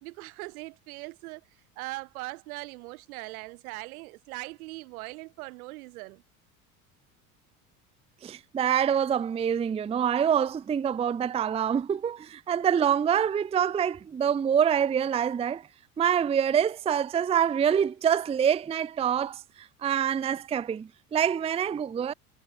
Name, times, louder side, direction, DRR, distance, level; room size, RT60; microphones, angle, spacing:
voice 1, 0.0-1.4 1.8-6.2, right 22 dB, 70° right, 2.2 m, -40 dB
voice 2, 8.2-15.7 16.0-22.1, right 8 dB, 15° right, 0.5 m, -26 dB
hypercardioid pair, 70°, 45 cm